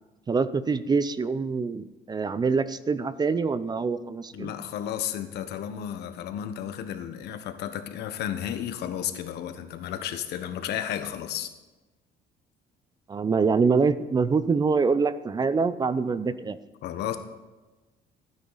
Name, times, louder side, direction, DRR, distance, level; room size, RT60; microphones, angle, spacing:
voice 1, 0.3-4.5 13.1-16.6, right 4 dB, 25° right, 15 dB, 0.5 m, -25 dB
voice 2, 4.3-11.5 16.8-17.2, left 10 dB, 75° left, 9 dB, 1.2 m, -33 dB
15.5 x 9.5 x 4.1 m, 1.2 s
cardioid pair, 110°, 17 cm